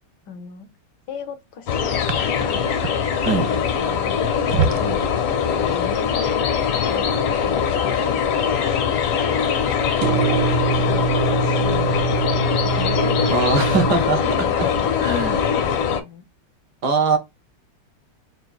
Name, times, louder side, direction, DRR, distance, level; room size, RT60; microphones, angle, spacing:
voice 1, 0.3-0.7 1.1-2.7 3.3-10.0 10.9-13.3 14.2-16.2, left 7 dB, 65° left, 1.1 m, -36 dB
sound 1, 1.7-16.0, left 7 dB, 80° left, 1.8 m, -22 dB
sound 2, 2.1-5.2 5.4-5.9 6.2-6.3 6.6-7.4 7.7-8.4 10.0-13.9, right 5 dB, 75° right, 0.9 m, -25 dB
voice 2, 13.3-14.2 14.6-14.7 15.0-15.4 16.8-17.2, right 4 dB, 60° right, 1.3 m, -21 dB
6.8 x 2.5 x 2.3 m
omnidirectional pair, 2.4 m